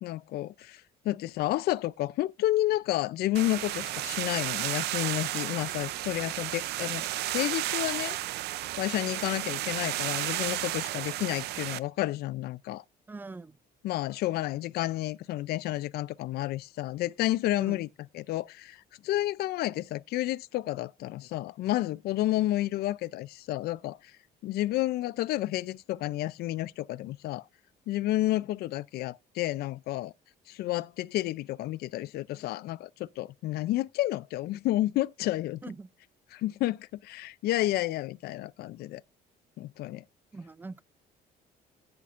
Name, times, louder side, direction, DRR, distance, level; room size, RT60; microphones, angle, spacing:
voice 1, 0.0-8.2 8.8-12.8 13.8-17.9 18.1-24.2 24.4-27.4 27.9-30.1 30.5-35.6 36.3-39.0 39.6-40.0, left 15 dB, 70° left, 0.4 m, -31 dB
sound 1, 3.3-11.8, right 15 dB, 75° right, 0.5 m, -33 dB
voice 2, 13.1-13.6 17.6-17.8 35.6-35.9 40.3-40.8, right 3 dB, 10° right, 0.4 m, -42 dB
16.5 x 5.8 x 2.5 m
cardioid pair, 110°, 17 cm